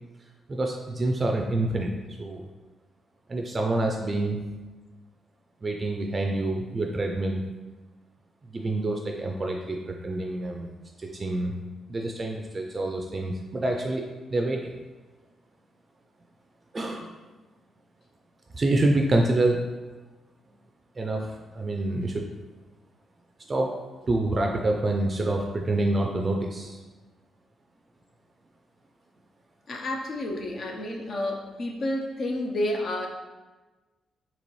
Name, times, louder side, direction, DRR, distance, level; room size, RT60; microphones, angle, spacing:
voice 1, 0.5-1.9 2.2-2.5 3.3-4.4 5.6-7.4 8.5-10.7 11.0-11.5 11.9-14.0 14.3-14.7 16.7-17.1 18.5-19.6 21.0-22.2 23.5-23.7 24.1-26.8, right 2 dB, 35° right, 2 dB, 0.4 m, -27 dB
voice 2, 29.7-33.1, left 1 dB, 55° left, 1 dB, 0.6 m, -30 dB
4.0 x 2.9 x 3.1 m, 1.2 s
cardioid pair, 80°, 0 cm